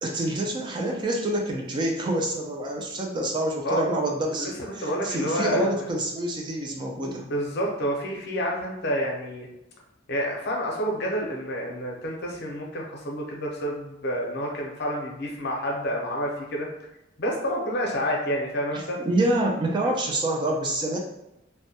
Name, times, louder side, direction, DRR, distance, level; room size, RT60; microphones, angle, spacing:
voice 1, 0.0-7.3 18.7-21.0, right 1 dB, 25° right, 0 dB, 0.3 m, -27 dB
voice 2, 4.4-5.8 7.3-9.5 10.1-16.7 17.2-19.0 19.8-19.9, equal, 60° left, -1 dB, 0.6 m, -29 dB
2.1 x 2.1 x 2.7 m, 0.87 s
head